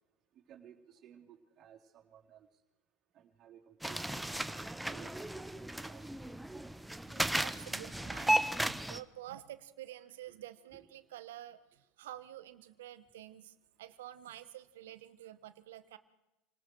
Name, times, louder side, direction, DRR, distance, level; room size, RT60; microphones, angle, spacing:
voice 1, 0.3-2.5 3.1-6.0 9.3-9.4 10.3-10.4 10.7-10.9, right 9 dB, 40° right, 0 dB, 3.9 m, -57 dB
sound 1, 3.8-9.0, right 1 dB, 5° right, 0.9 m, -35 dB
voice 2, 7.0-16.0, right 13 dB, 80° right, 12 dB, 1.3 m, -49 dB
29.0 x 19.0 x 4.8 m, 0.98 s
hypercardioid pair, 95°, 0 cm